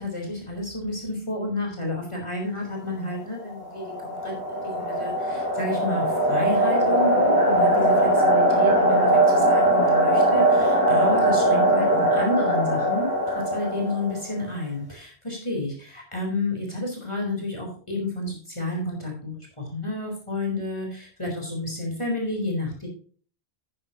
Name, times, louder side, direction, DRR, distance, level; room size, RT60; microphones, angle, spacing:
voice 1, 0.0-13.1 13.5-22.9, left 1 dB, 30° left, 0 dB, 3.9 m, -30 dB
sound 1, 3.4-14.3, right 1 dB, 20° right, 5.6 m, -21 dB
11.0 x 9.7 x 2.9 m, 0.41 s
omnidirectional pair, 1.1 m